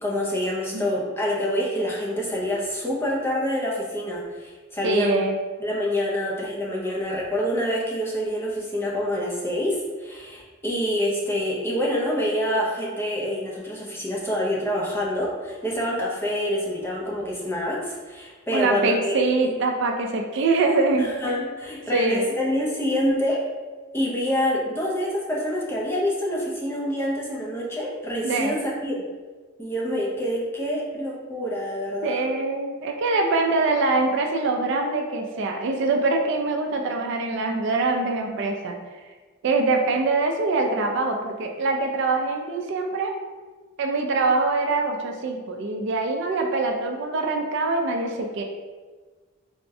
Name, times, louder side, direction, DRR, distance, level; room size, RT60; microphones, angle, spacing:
voice 1, 0.0-5.3 5.6-19.0 19.4-19.5 21.0-23.4 23.9-29.0 29.6-32.3, equal, 10° left, -4 dB, 0.4 m, -26 dB
voice 2, 4.8-5.3 18.5-21.1 21.9-22.3 28.2-28.5 32.0-38.8 39.4-43.1 43.8-48.4, right 3 dB, 60° right, 3 dB, 0.3 m, -24 dB
3.5 x 2.0 x 2.6 m, 1.4 s
head